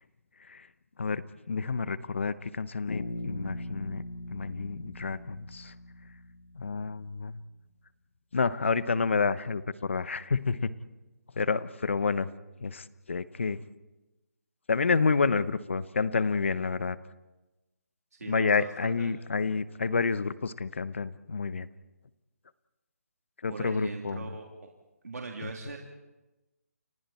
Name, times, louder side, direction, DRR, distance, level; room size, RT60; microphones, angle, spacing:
voice 1, 1.0-4.0 4.3-5.7 6.6-7.4 8.3-10.7 11.4-12.3 12.6-13.6 14.7-17.0 18.3-21.7 23.4-24.3, left 4 dB, 50° left, 16 dB, 0.9 m, -29 dB
Bass guitar, 2.9-6.8, left 1 dB, 75° left, 5.9 m, -40 dB
voice 2, 18.1-18.7 19.0-19.1 23.5-24.5 25.0-25.8, right 3 dB, 75° right, 1 dB, 3.1 m, -40 dB
30.0 x 27.5 x 4.4 m, 1.1 s
hypercardioid pair, 180°, 9 cm